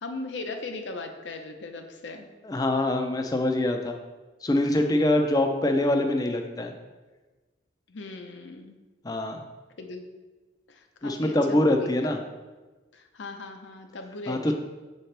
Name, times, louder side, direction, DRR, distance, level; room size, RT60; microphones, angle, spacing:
voice 1, 0.0-2.3 7.9-8.8 9.8-10.0 10.7-11.9 12.9-14.5, left 3 dB, 80° left, 5 dB, 0.7 m, -38 dB
voice 2, 2.4-3.9 4.4-6.7 9.0-9.5 11.0-12.2 14.3-14.5, left 1 dB, 20° left, 5 dB, 0.4 m, -24 dB
7.3 x 4.3 x 3.3 m, 1.2 s
head